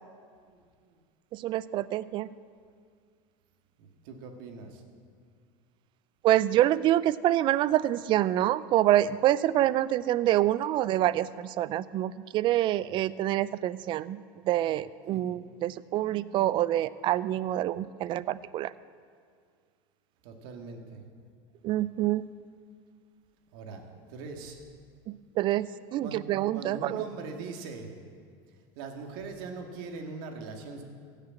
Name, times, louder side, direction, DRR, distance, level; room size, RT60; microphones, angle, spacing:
voice 1, 1.3-2.3 6.2-14.2 14.5-18.7 21.6-22.2 25.4-27.1, right 13 dB, 40° right, 18 dB, 0.4 m, -26 dB
voice 2, 3.8-4.8 15.1-15.2 20.2-21.0 23.5-23.8 24.1-24.6 26.0-26.3 26.5-27.9 28.8-30.8, right 4 dB, 70° right, 3 dB, 2.0 m, -41 dB
15.5 x 6.6 x 8.6 m, 2.1 s
supercardioid pair, 130°, 12 cm